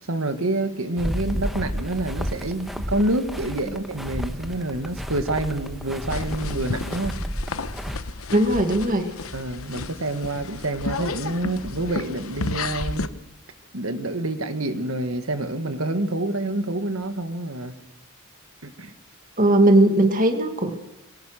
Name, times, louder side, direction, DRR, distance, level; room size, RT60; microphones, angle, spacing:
voice 1, 0.1-7.2 9.3-13.2 13.7-17.8 18.6-18.9, right 2 dB, 75° right, 8 dB, 1.8 m, -27 dB
sound 1, 1.0-8.0, equal, ahead, 1.1 m, -32 dB
sound 2, 6.1-13.1, left 3 dB, 75° left, 1.0 m, -32 dB
voice 2, 8.3-9.1 19.4-20.7, right 1 dB, 40° right, 6 dB, 2.0 m, -18 dB
23.5 x 17.5 x 6.5 m, 0.92 s
head